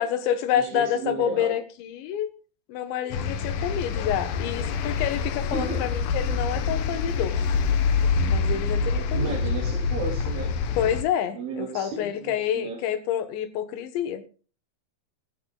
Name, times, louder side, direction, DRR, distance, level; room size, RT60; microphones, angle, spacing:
voice 1, 0.0-2.3 2.7-7.4 8.2-9.4 10.8-14.2, left 10 dB, 70° left, 3.4 m, -28 dB
voice 2, 0.6-1.6 5.5-5.8 9.1-10.5 11.3-12.8, right 3 dB, 75° right, 5.3 m, -33 dB
sound 1, 3.1-11.0, left 5 dB, 90° left, 1.8 m, -26 dB
21.5 x 12.5 x 2.4 m
omnidirectional pair, 5.6 m